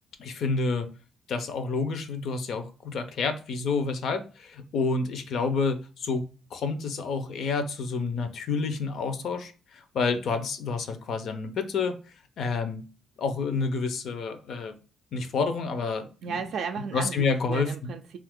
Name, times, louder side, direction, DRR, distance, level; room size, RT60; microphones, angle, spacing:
voice 1, 0.2-0.9 1.3-6.2 6.5-11.9 12.4-12.8 13.2-14.8 15.1-16.4 16.9-17.7, left 4 dB, 70° left, 0.5 m, -29 dB
voice 2, 16.2-18.2, right 6 dB, 70° right, 0.3 m, -34 dB
2.8 x 2.4 x 3.5 m
cardioid pair, 90°, 0 cm